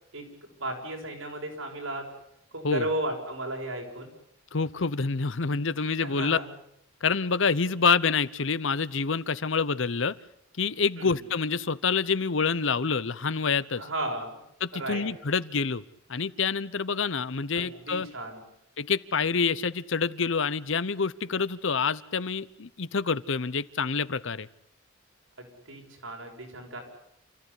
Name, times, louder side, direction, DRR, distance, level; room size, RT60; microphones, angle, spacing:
voice 1, 0.5-2.1 2.5-4.1 6.0-6.4 11.0-11.2 13.8-14.4 14.7-15.1 17.5-18.4 25.4-26.8, right 1 dB, 85° right, 1 dB, 6.8 m, -34 dB
voice 2, 4.5-6.4 7.0-10.1 10.6-13.8 14.6-15.8 16.1-18.1 18.8-24.5, left 5 dB, 65° left, 17 dB, 0.9 m, -27 dB
29.0 x 15.0 x 10.0 m, 0.77 s
head